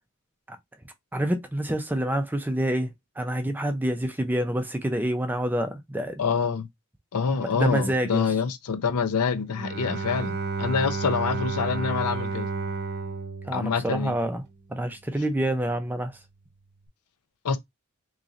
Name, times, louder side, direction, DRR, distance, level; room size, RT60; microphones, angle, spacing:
voice 1, 1.1-6.2 7.4-8.3 13.4-14.4 14.7-16.2, right 1 dB, 10° right, 0.5 m, -27 dB
voice 2, 6.2-6.7 7.1-12.5 13.5-14.2 17.4-17.6, left 5 dB, 90° left, 0.6 m, -26 dB
Bowed string instrument, 9.5-14.4, right 4 dB, 45° right, 0.8 m, -32 dB
3.0 x 2.7 x 3.7 m
head